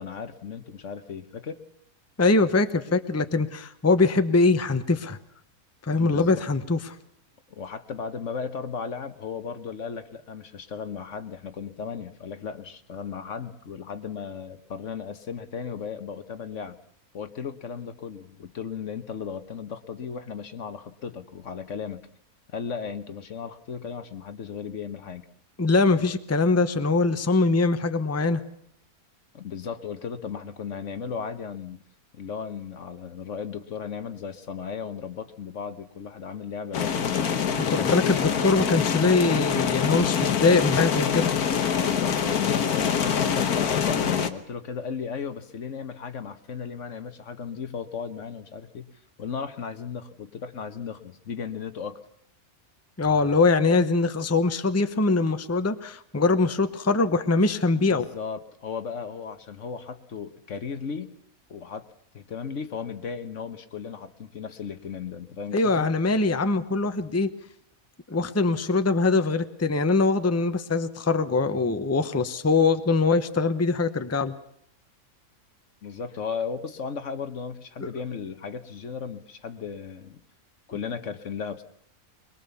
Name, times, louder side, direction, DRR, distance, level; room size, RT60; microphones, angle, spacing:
voice 1, 0.0-1.6 5.9-6.4 7.5-16.8 17.1-22.1 22.5-25.2 29.3-31.8 32.1-37.2 37.6-38.5 41.7-48.9 49.2-52.0 57.8-61.2 61.5-61.9 62.1-65.9 75.8-80.2 80.7-81.6, left 6 dB, 55° left, 10 dB, 1.4 m, -36 dB
voice 2, 2.2-5.2 5.8-6.9 25.6-28.4 37.6-41.3 53.0-58.0 65.5-67.3 68.1-74.3 77.8-77.9, left 3 dB, 15° left, 10 dB, 0.8 m, -22 dB
sound 1, 36.7-44.3, left 7 dB, 80° left, 1.7 m, -25 dB
22.5 x 22.0 x 7.0 m, 0.71 s
omnidirectional pair, 1.6 m